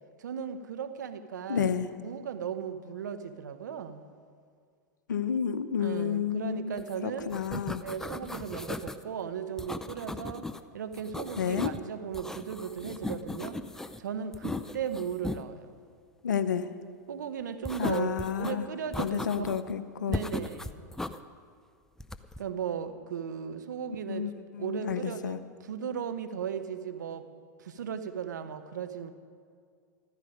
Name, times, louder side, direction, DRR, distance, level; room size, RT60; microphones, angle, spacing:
voice 1, 0.2-4.0 5.8-7.3 7.8-10.5 10.7-13.6 14.0-15.7 17.1-19.5 20.1-20.9 22.4-24.3 24.6-27.3 27.6-29.1, right 7 dB, 80° right, 9 dB, 1.0 m, -36 dB
voice 2, 1.5-1.9 5.1-7.8 11.4-11.7 16.2-16.7 17.8-18.7 19.0-20.2 24.1-25.4, left 8 dB, 85° left, 12 dB, 0.7 m, -31 dB
sound 1, 6.8-6.9 7.2-9.0 9.6-10.6 10.9-11.8 12.1-14.0 14.3-15.4 17.6-18.5 18.9-19.7 20.1-21.2 22.0-22.4, left 2 dB, 5° left, 0.5 m, -37 dB
14.0 x 13.0 x 5.1 m, 2.2 s
hypercardioid pair, 100°, 10 cm